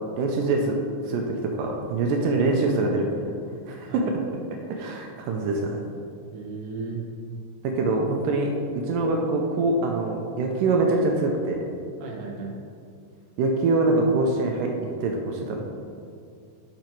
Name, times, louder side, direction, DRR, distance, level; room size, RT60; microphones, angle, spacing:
voice 1, 0.2-0.8 1.1-3.1 3.7-4.0 4.7-5.8 7.6-11.6 13.4-14.7 15.0-15.7, right 3 dB, 80° right, 1 dB, 2.2 m, -24 dB
voice 2, 3.9-4.2 6.3-7.0 12.0-12.6, right 4 dB, 65° right, -1 dB, 1.9 m, -35 dB
7.6 x 5.2 x 4.5 m, 2.4 s
omnidirectional pair, 3.9 m